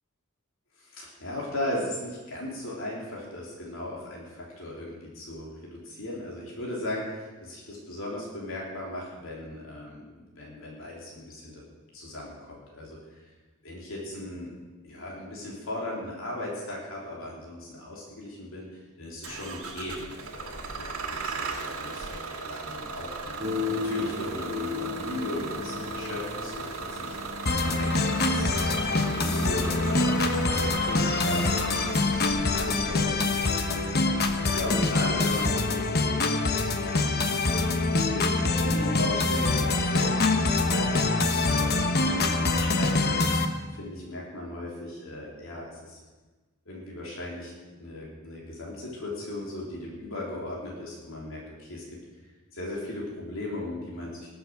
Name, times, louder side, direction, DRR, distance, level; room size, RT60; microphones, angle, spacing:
voice 1, 0.8-11.6 11.9-13.3 13.6-14.6 14.8-27.2 27.6-36.2 36.8-43.4 43.7-46.0 46.7-51.8 52.5-54.3, left 1 dB, 65° left, -3 dB, 3.5 m, -37 dB
Bus / Engine starting, 19.2-35.4, right 4 dB, 75° right, 2.1 m, -37 dB
sound 1, 23.4-30.5, left 4 dB, 30° right, 1.2 m, -36 dB
sound 2, 27.5-43.5, left 3 dB, 50° left, 1.2 m, -25 dB
20.0 x 8.0 x 6.4 m, 1.3 s
head